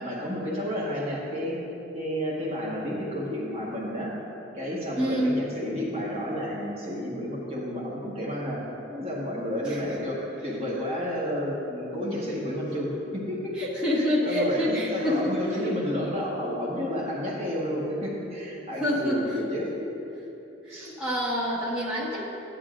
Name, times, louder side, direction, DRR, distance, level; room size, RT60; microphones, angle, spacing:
voice 1, 0.0-1.6 1.9-4.1 4.5-8.6 8.9-13.5 14.0-19.7 20.7-20.9, equal, 30° right, -6 dB, 1.4 m, -31 dB
voice 2, 4.9-5.4 9.6-10.0 13.6-15.7 18.8-19.4 20.6-22.2, equal, 5° right, -9 dB, 1.4 m, -27 dB
12.0 x 9.9 x 2.5 m, 3.0 s
head